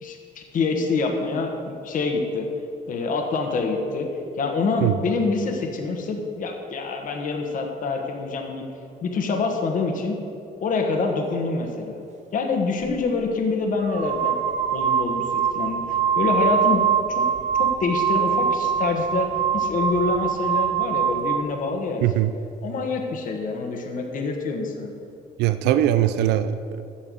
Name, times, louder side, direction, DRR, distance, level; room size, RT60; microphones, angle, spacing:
voice 1, 0.0-2.5 2.9-4.1 4.4-8.7 9.0-10.2 10.6-12.0 12.3-14.4 14.7-17.2 17.6-19.3 19.5-22.0 22.6-24.9, left 4 dB, 50° left, 3 dB, 1.3 m, -26 dB
sound 1, 12.8-13.0 13.8-21.5, right 7 dB, 45° right, 0.6 m, -23 dB
voice 2, 22.0-22.3 25.4-26.8, right 12 dB, 85° right, 11 dB, 0.4 m, -21 dB
8.6 x 6.9 x 7.7 m, 2.6 s
cardioid pair, 110°, 17 cm